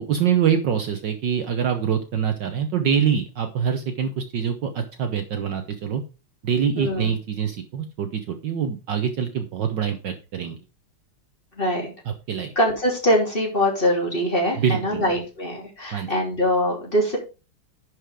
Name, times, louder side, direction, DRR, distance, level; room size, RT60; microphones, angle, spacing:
voice 1, 0.0-6.0 6.4-10.6 12.1-12.5 14.5-15.0 15.9-16.1, right 7 dB, 60° right, 6 dB, 1.4 m, -25 dB
voice 2, 6.7-7.1 11.6-11.9 12.5-17.2, equal, 25° left, -2 dB, 3.2 m, -23 dB
10.5 x 5.1 x 4.8 m, 0.31 s
omnidirectional pair, 2.4 m